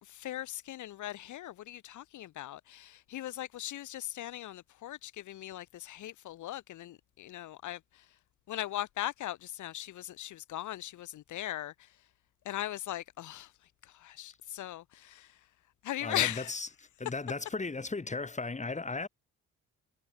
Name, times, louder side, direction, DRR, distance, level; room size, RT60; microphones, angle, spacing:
voice 1, 0.0-8.1 8.5-12.0 12.4-13.5 13.8-15.4 15.8-16.6, left 13 dB, 75° left, 1.5 m, -39 dB
voice 2, 16.0-16.7 17.0-19.1, left 3 dB, 25° left, 6.4 m, -36 dB
cardioid pair, 90°, 30 cm